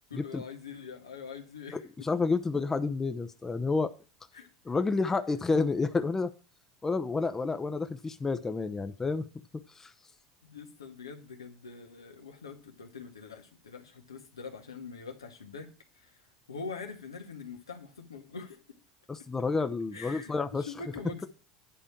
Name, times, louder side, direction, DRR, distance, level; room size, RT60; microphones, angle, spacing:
voice 1, 0.1-2.1 4.3-4.5 10.4-18.6 19.9-21.3, left 5 dB, 90° left, 1.6 m, -44 dB
voice 2, 2.0-3.9 4.7-6.3 6.8-9.3 9.8-9.9 19.1-20.6, left 4 dB, 20° left, 0.8 m, -29 dB
10.0 x 4.9 x 7.2 m
hypercardioid pair, 80°, 2 cm